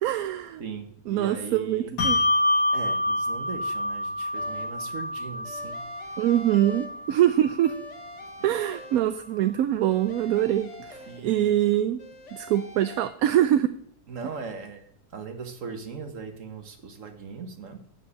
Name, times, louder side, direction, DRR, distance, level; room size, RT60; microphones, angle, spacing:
voice 1, 0.0-0.6 1.1-2.2 6.2-7.9 8.4-12.0 12.3-13.7, right 12 dB, 70° right, 11 dB, 1.0 m, -24 dB
voice 2, 0.6-1.9 2.7-5.8 11.1-11.5 14.1-17.8, right 5 dB, 55° right, 6 dB, 1.7 m, -39 dB
Bell, 2.0-8.8, left 1 dB, 80° left, 1.8 m, -28 dB
sound 1, 4.4-4.9 5.4-7.3 7.6-9.4 9.8-11.6 12.0-13.1, left 2 dB, 50° left, 1.7 m, -45 dB
7.6 x 7.4 x 8.2 m, 0.66 s
omnidirectional pair, 1.7 m